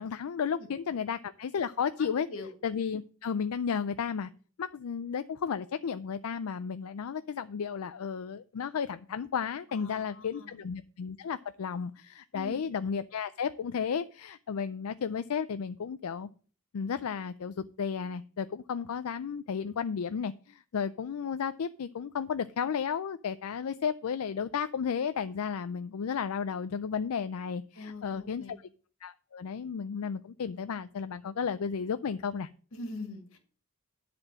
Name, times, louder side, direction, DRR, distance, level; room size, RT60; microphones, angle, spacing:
voice 1, 0.0-2.3 2.6-4.3 4.6-16.3 16.7-28.6 29.0-32.5, left 6 dB, 85° left, 0.4 m, -33 dB
voice 2, 2.0-2.5 9.7-10.6 12.3-12.6 27.8-28.6 32.7-33.4, left 2 dB, 65° left, 2.0 m, -43 dB
10.5 x 4.3 x 7.5 m
head